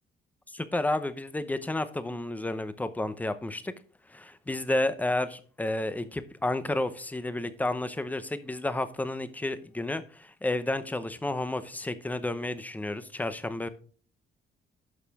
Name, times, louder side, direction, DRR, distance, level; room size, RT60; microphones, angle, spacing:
voice 1, 0.5-3.7 4.1-13.7, left 2 dB, 10° left, 0.7 m, -31 dB
11.0 x 6.6 x 3.5 m
cardioid pair, 160°, 19 cm